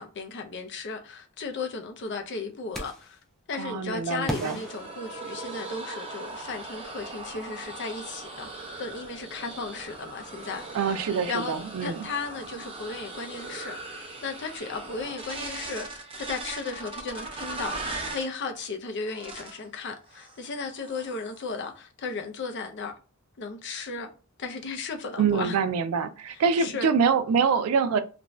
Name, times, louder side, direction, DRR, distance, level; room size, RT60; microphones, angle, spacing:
voice 1, 0.0-3.2 3.5-8.5 8.8-11.5 11.8-22.9 23.4-24.1 24.4-25.6 26.3-26.9, left 4 dB, 55° left, 0.5 m, -35 dB
sound 1, 2.7-3.2 4.3-5.8, equal, ahead, 0.4 m, -36 dB
voice 2, 3.6-4.6 10.7-12.1 25.2-28.0, right 6 dB, 90° right, 0.4 m, -25 dB
sound 2, 4.5-18.3 19.0-19.6 20.1-20.4 20.7-21.5, right 2 dB, 25° right, 0.7 m, -39 dB
2.5 x 2.2 x 3.0 m
head